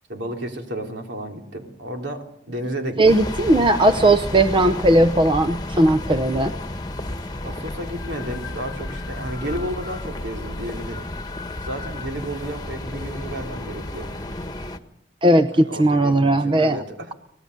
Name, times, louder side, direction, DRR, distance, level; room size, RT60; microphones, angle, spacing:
voice 1, 0.1-3.2 7.4-11.1 11.6-14.1 15.5-17.1, right 1 dB, 65° right, 3 dB, 3.7 m, -32 dB
sound 1, 3.0-14.8, left 1 dB, 20° left, 1.4 m, -32 dB
voice 2, 3.0-6.5 15.2-16.8, right 1 dB, 25° right, 10 dB, 0.8 m, -17 dB
25.0 x 19.0 x 6.8 m, 0.72 s
head